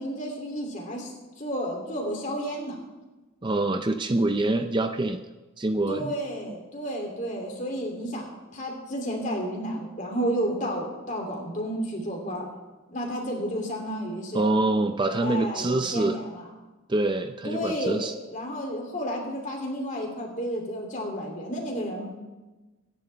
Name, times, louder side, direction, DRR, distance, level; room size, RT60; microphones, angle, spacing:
voice 1, 0.0-2.8 5.9-12.5 12.9-14.5 15.2-16.5 17.4-22.1, equal, 35° left, 1 dB, 2.8 m, -31 dB
voice 2, 3.4-5.2 5.6-6.1 14.3-16.2 16.9-18.1, right 2 dB, 20° right, 7 dB, 0.4 m, -25 dB
23.5 x 10.5 x 3.4 m, 1.2 s
head